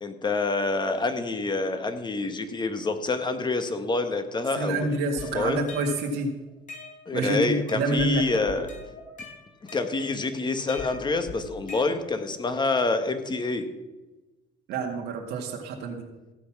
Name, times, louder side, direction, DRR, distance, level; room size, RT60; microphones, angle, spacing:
voice 1, 0.0-5.1 5.3-5.6 7.1-8.7 9.7-13.7, left 3 dB, 25° left, 8 dB, 1.5 m, -27 dB
voice 2, 4.6-6.3 7.1-8.5 14.7-16.0, right 2 dB, 85° right, 0 dB, 2.1 m, -28 dB
sound 1, 4.7-6.1 6.5-7.3 7.7-8.1 8.5-10.3 10.7-12.3, left 3 dB, 50° left, 5.0 m, -41 dB
15.5 x 8.1 x 6.1 m, 1.1 s
cardioid pair, 110°, 17 cm